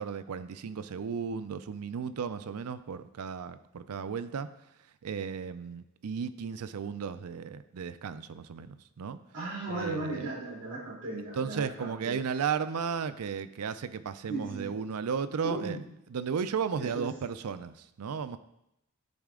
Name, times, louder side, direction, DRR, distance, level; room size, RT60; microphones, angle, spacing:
voice 1, 0.0-4.5 5.0-9.2 9.7-10.3 11.3-15.8 16.1-18.4, right 6 dB, 90° right, 13 dB, 0.5 m, -34 dB
voice 2, 9.3-12.2 14.3-14.7 15.4-15.8 16.8-17.1, right 2 dB, 60° right, -4 dB, 3.0 m, -36 dB
10.5 x 4.9 x 3.7 m, 0.84 s
head